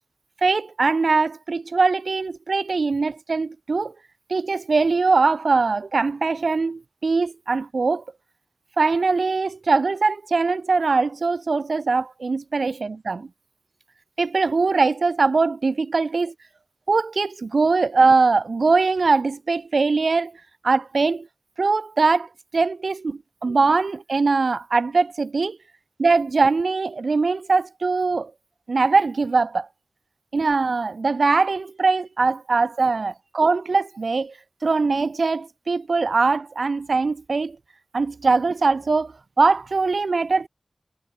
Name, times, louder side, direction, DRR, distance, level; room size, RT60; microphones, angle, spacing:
voice 1, 0.4-3.9 4.3-8.0 8.8-13.3 14.2-16.3 16.9-20.3 20.6-21.3 21.6-22.3 22.5-25.6 26.0-28.3 28.7-29.7 30.3-34.3 34.6-37.6 37.9-40.5, right 4 dB, 70° right, 3.2 m, -21 dB
wide cardioid pair, 55°, 0 cm